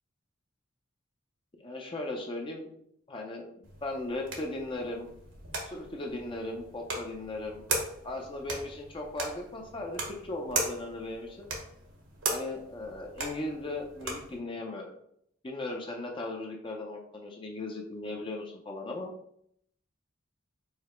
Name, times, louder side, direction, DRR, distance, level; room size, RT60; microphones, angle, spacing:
voice 1, 1.6-2.7 3.1-3.5 3.8-5.1 5.7-7.6 8.0-11.5 12.3-14.9 15.4-19.1, left 2 dB, 25° left, 1 dB, 0.5 m, -37 dB
sound 1, 3.6-14.4, right 3 dB, 70° right, 1.1 m, -38 dB
4.8 x 2.0 x 4.3 m, 0.70 s
head